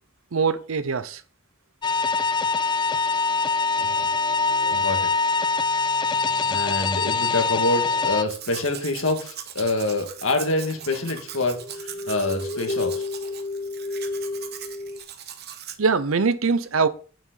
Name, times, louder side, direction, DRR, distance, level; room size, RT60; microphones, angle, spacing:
voice 1, 0.3-1.2 15.8-16.9, right 5 dB, 80° right, 0.7 m, -22 dB
sound 1, 1.8-8.2, left 4 dB, 20° left, 0.3 m, -23 dB
voice 2, 3.8-4.1 4.7-5.1 6.5-13.1, left 2 dB, 75° left, 1.9 m, -26 dB
Domestic sounds home sounds, 8.2-15.8, right 9 dB, 50° right, 1.0 m, -40 dB
sound 2, 11.2-15.0, left 3 dB, 40° left, 0.7 m, -31 dB
9.1 x 7.2 x 3.9 m
head